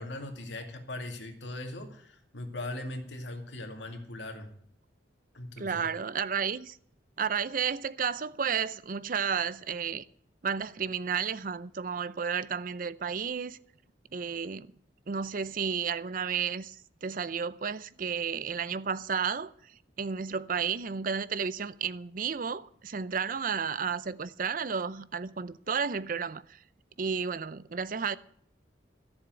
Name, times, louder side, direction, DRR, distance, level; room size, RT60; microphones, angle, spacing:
voice 1, 0.0-4.5 5.3-5.9, left 1 dB, 80° left, 2.3 m, -39 dB
voice 2, 5.6-6.8 7.2-10.0 10.4-13.6 14.1-14.7 15.1-16.8 17.0-26.6 27.0-28.2, right 6 dB, 50° right, 0.5 m, -32 dB
13.5 x 7.2 x 9.0 m
head